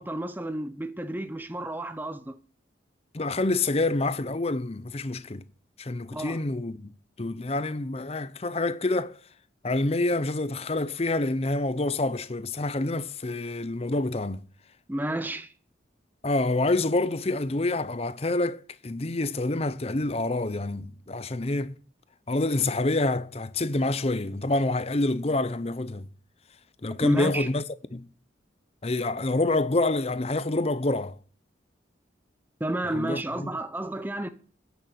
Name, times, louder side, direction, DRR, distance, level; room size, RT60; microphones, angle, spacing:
voice 1, 0.0-2.4 6.1-6.4 14.9-15.5 27.0-27.5 32.6-34.3, right 1 dB, 10° right, 0.7 m, -31 dB
voice 2, 3.1-5.4 5.8-6.9 7.2-9.2 9.6-14.4 16.2-21.8 22.3-26.1 26.8-27.6 27.9-28.1 28.8-31.2 32.9-33.5, left 2 dB, 30° left, 0.6 m, -27 dB
10.0 x 7.1 x 8.2 m
head